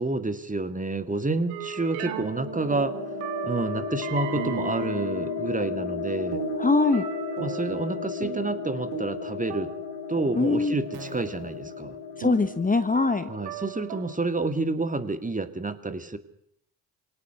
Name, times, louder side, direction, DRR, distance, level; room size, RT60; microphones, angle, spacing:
voice 1, 0.0-3.0 3.4-6.4 7.4-9.7 10.1-12.0 13.3-16.2, right 3 dB, 15° right, 10 dB, 2.0 m, -29 dB
sound 1, 1.5-14.2, right 10 dB, 80° right, 2.1 m, -37 dB
sound 2, 1.6-13.5, left 6 dB, 60° left, 3.3 m, -35 dB
voice 2, 6.6-7.0 10.3-10.7 12.2-13.3, left 3 dB, 20° left, 11 dB, 1.2 m, -22 dB
24.0 x 18.0 x 6.8 m, 0.72 s
hypercardioid pair, 55°, 45 cm